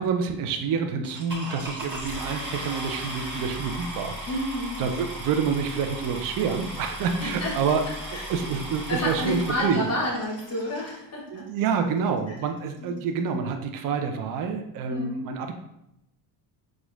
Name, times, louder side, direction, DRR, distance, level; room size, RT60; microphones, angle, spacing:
voice 1, 0.0-4.3 4.8-7.8 8.3-9.9 11.3-15.5, right 6 dB, 45° right, 6 dB, 0.4 m, -27 dB
sound 1, 1.0-11.0 11.8-11.9 12.4-12.5 12.7-13.0, equal, 25° right, 1.4 m, -37 dB
voice 2, 4.3-4.8 7.2-7.5 8.1-8.3 8.9-11.5 12.8-13.0 14.9-15.1, left 1 dB, 30° left, -3 dB, 0.9 m, -30 dB
4.2 x 2.4 x 2.3 m, 0.82 s
supercardioid pair, 95°, 48 cm